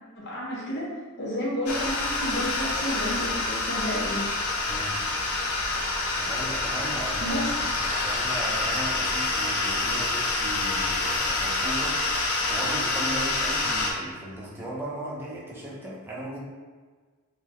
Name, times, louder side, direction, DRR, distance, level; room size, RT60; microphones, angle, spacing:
voice 1, 0.2-0.9 1.2-4.2 7.2-7.5, equal, 50° left, -6 dB, 0.8 m, -31 dB
sound 1, 1.7-13.9, left 2 dB, 75° left, 0.5 m, -27 dB
voice 2, 4.7-5.0 6.2-12.0 12.5-16.4, right 1 dB, 10° right, -6 dB, 0.5 m, -37 dB
3.6 x 2.2 x 2.9 m, 1.5 s
head